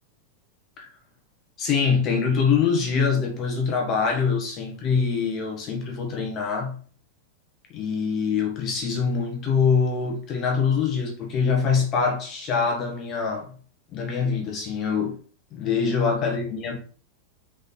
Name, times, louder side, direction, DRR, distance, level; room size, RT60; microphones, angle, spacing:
voice 1, 1.6-6.7 7.7-13.5 13.9-15.2 15.5-16.8, left 5 dB, 25° left, 1.5 m, -24 dB
5.1 x 4.2 x 5.5 m
supercardioid pair, 170°, 0 cm